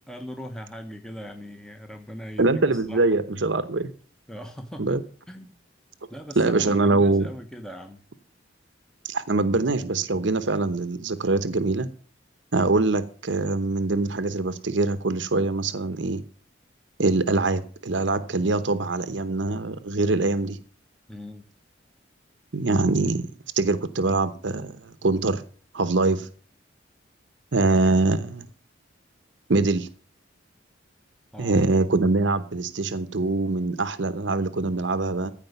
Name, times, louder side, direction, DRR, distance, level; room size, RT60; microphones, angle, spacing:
voice 1, 0.1-3.1 4.3-5.0 5.3-5.6 6.1-8.0 21.1-21.5 31.3-31.7, equal, 5° left, 1.0 m, -40 dB
voice 2, 2.4-3.9 4.8-5.0 6.4-7.3 9.0-11.9 12.5-16.2 17.0-20.6 22.5-24.8 25.0-25.4 25.7-26.3 27.5-28.4 29.5-29.9 31.4-35.3, right 3 dB, 70° right, 0.9 m, -23 dB
15.0 x 5.1 x 7.9 m
head